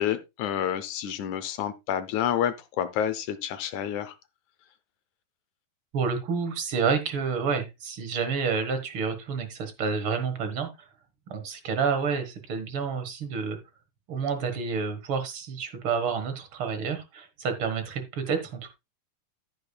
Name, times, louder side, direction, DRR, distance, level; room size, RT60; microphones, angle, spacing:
voice 1, 0.0-4.1, left 10 dB, 75° left, 1.9 m, -29 dB
voice 2, 5.9-10.7 11.3-13.6 14.1-18.7, right 5 dB, 50° right, 1.7 m, -29 dB
14.5 x 6.9 x 2.3 m
omnidirectional pair, 4.0 m